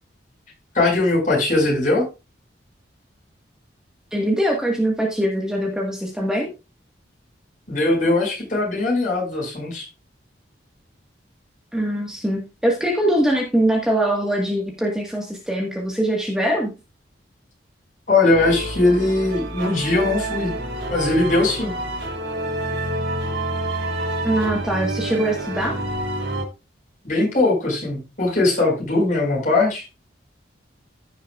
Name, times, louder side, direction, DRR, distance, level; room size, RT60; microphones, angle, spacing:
voice 1, 0.7-2.0 7.7-9.9 18.1-20.5 20.9-21.7 27.0-29.9, left 2 dB, 45° left, -3 dB, 5.6 m, -20 dB
voice 2, 4.1-6.5 11.7-16.7 24.2-25.7, right 1 dB, 5° right, -2 dB, 1.6 m, -22 dB
sound 1, 18.3-26.4, right 1 dB, 80° right, 3.5 m, -28 dB
15.5 x 6.6 x 2.4 m, 0.28 s
head